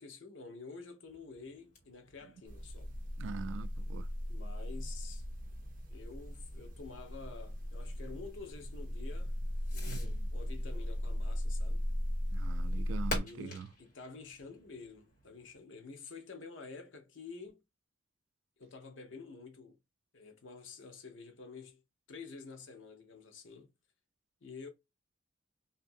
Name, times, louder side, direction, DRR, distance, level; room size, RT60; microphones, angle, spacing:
voice 1, 0.0-2.9 4.3-5.3 5.9-9.4 9.7-11.9 13.1-17.6 18.6-19.8 20.1-21.8 22.1-23.7 24.4-24.7, left 4 dB, 85° left, 0.8 m, -49 dB
Fireworks, 1.0-15.6, left 1 dB, 40° left, 1.6 m, -51 dB
sound 1, 2.5-13.2, equal, 45° right, 0.6 m, -37 dB
voice 2, 3.2-4.1 9.8-10.3 12.3-13.7, right 5 dB, 85° right, 0.3 m, -43 dB
2.7 x 2.6 x 2.5 m
head